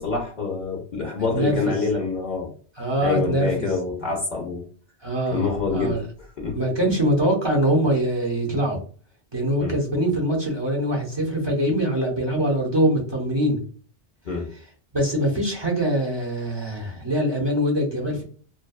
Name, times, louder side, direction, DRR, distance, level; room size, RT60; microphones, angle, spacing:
voice 1, 0.0-2.5 3.0-4.6 5.3-6.0 6.4-6.6 9.6-9.8 14.2-14.5, left 4 dB, 55° left, -1 dB, 0.7 m, -26 dB
voice 2, 1.3-1.7 2.8-3.7 5.0-6.0 6.5-8.8 9.3-13.6 14.9-18.2, equal, 30° right, -2 dB, 0.7 m, -23 dB
2.6 x 2.2 x 2.3 m, 0.42 s
omnidirectional pair, 1.1 m